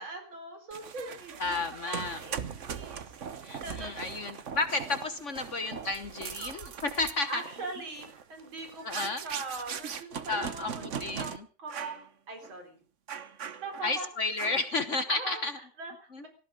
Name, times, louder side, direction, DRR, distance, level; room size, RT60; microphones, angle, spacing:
voice 1, 0.0-3.2 3.6-4.3 7.3-11.3 11.6-12.8 13.6-14.1 14.9-16.3, right 3 dB, 80° right, 4 dB, 4.9 m, -41 dB
sound 1, 0.7-11.4 11.7-12.0 12.4-12.6 13.1-14.0 14.4-14.8, right 7 dB, 45° right, 1.1 m, -40 dB
voice 2, 1.4-2.2 3.4-7.4 8.8-9.2 10.3-11.5 13.8-15.5 16.1-16.3, left 3 dB, 45° left, 10 dB, 1.2 m, -32 dB
18.0 x 14.5 x 5.2 m, 0.38 s
omnidirectional pair, 2.2 m